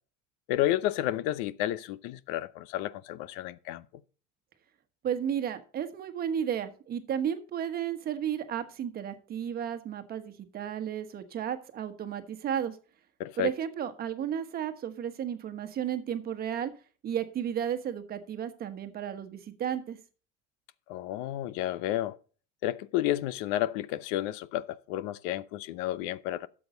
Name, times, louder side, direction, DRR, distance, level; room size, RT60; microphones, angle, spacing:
voice 1, 0.5-3.8 13.2-13.5 20.9-22.2 22.6-26.5, left 13 dB, 80° left, 0.8 m, -31 dB
voice 2, 5.0-12.8 13.4-16.7 17.0-20.0, right 9 dB, 30° right, 1.2 m, -33 dB
12.5 x 7.7 x 3.9 m
cardioid pair, 175°, 29 cm